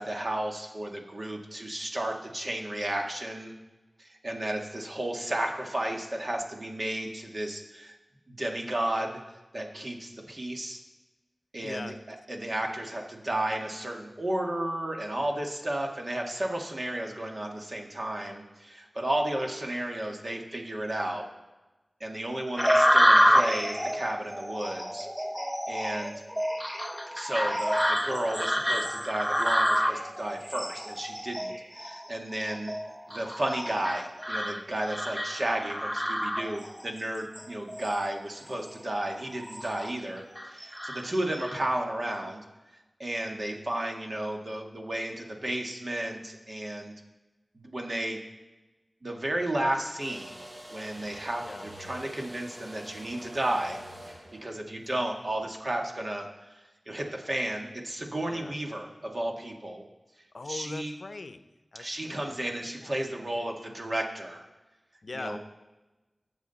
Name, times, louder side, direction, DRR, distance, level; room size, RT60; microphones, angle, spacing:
voice 1, 0.0-3.5 4.0-8.0 8.3-9.2 9.5-10.8 11.5-21.3 22.0-25.1 25.7-26.2 27.1-32.7 33.1-42.4 43.0-46.9 47.5-48.2 49.0-50.4 50.7-53.8 54.4-59.8 60.5-61.0 61.8-64.5 65.1-65.4, right 1 dB, 50° right, 2 dB, 1.7 m, -33 dB
voice 2, 11.6-11.9 51.4-51.7 58.3-58.5 60.3-61.4 61.7-62.5 62.8-63.0 65.0-65.4, left 3 dB, 75° left, 11 dB, 0.6 m, -41 dB
sound 1, 22.6-36.9 37.4-38.0 38.5-38.7 39.2-39.9 40.4-41.6, equal, 5° right, 0.7 m, -28 dB
sound 2, 50.0-55.4, equal, 70° right, 4.7 m, -46 dB
19.0 x 7.3 x 4.1 m, 1.1 s
wide cardioid pair, 75°, 0 cm